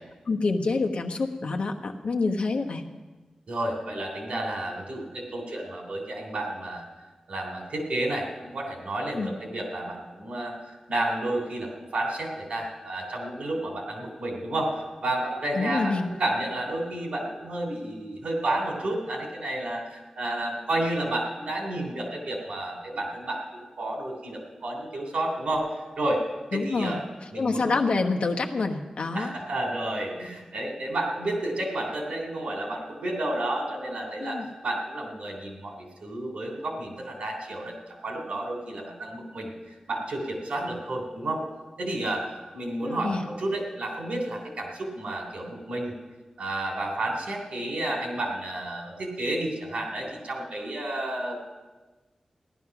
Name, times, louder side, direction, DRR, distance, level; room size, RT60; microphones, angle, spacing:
voice 1, 0.3-2.8 9.2-9.3 15.5-16.1 26.5-27.0 27.4-29.3 34.2-34.5 42.8-43.2, left 3 dB, 70° left, 3 dB, 1.2 m, -27 dB
voice 2, 3.5-6.8 7.3-25.7 26.0-26.2 26.5-27.0 27.3-27.8 29.1-37.7 38.0-41.4 41.8-42.2 42.5-45.9 46.4-51.5, right 1 dB, 90° right, 2 dB, 3.1 m, -31 dB
15.5 x 11.5 x 6.0 m, 1.2 s
wide cardioid pair, 130°, 2 cm